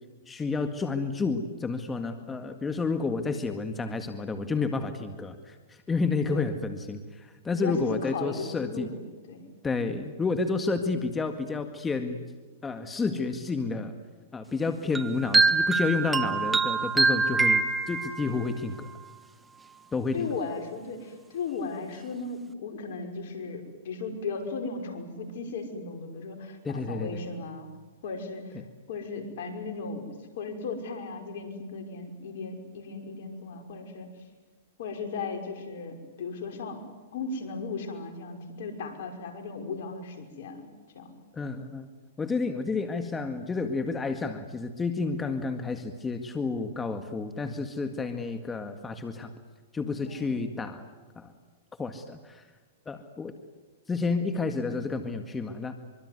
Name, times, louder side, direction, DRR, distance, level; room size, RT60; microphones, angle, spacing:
voice 1, 0.3-5.6 5.9-8.9 9.6-12.2 12.6-13.9 14.3-18.9 19.9-20.3 26.6-27.2 28.5-28.7 41.3-41.9 42.2-49.3 49.7-50.9 51.2-51.3 51.8-52.4 52.9-53.3 53.9-55.7, left 4 dB, 15° left, 7 dB, 1.9 m, -30 dB
voice 2, 6.3-6.6 7.5-9.0 9.3-9.5 20.1-27.7 28.0-28.6 28.9-34.1 34.8-36.8 37.1-40.7 40.9-41.1 50.0-50.4, left 4 dB, 65° left, 5 dB, 5.8 m, -36 dB
sound 1, 14.9-18.4, right 3 dB, 10° right, 1.7 m, -24 dB
25.0 x 24.5 x 9.6 m, 1.3 s
hypercardioid pair, 120°, 0 cm